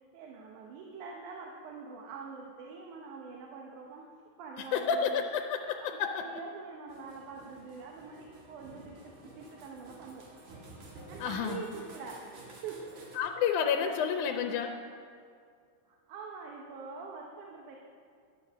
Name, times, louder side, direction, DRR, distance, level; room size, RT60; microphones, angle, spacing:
voice 1, 0.1-4.0 4.4-5.2 5.8-10.2 11.1-12.2 12.6-12.9 15.9-17.8, right 5 dB, 85° right, 0 dB, 2.4 m, -45 dB
voice 2, 4.7-6.3 11.2-11.6 13.2-14.7, left 7 dB, 80° left, 4 dB, 2.1 m, -30 dB
sound 1, 6.9-13.2, right 2 dB, 65° right, 3.2 m, -51 dB
12.0 x 9.6 x 6.2 m, 2.3 s
omnidirectional pair, 3.5 m